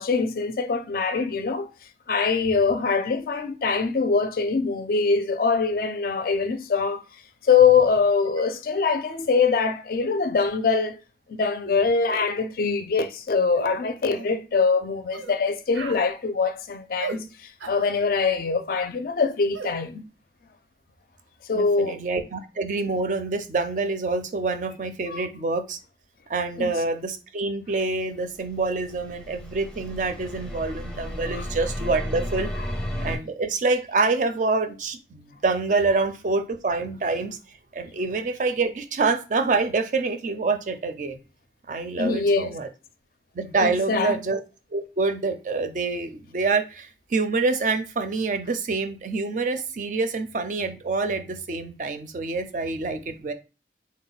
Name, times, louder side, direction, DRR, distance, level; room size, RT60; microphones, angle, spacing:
voice 1, 0.0-1.7 2.1-7.0 7.4-11.0 11.3-20.1 21.5-22.0 25.1-25.2 26.6-26.7 31.3-31.5 42.0-42.5 43.6-44.2, left 5 dB, 50° left, 0.4 m, -23 dB
sound 1, 13.6-13.7 14.1-14.3 15.1-15.4 15.7-16.0 17.0-17.2 17.6-17.8 19.5-19.7, right 4 dB, 90° right, 0.6 m, -36 dB
voice 2, 21.5-25.8 26.3-32.5 33.0-37.4 37.7-41.2 41.7-42.7 43.3-44.4 44.7-53.3, right 3 dB, 45° right, 0.4 m, -26 dB
sound 2, 28.4-33.2, equal, 5° left, 0.6 m, -33 dB
3.7 x 2.1 x 3.9 m
head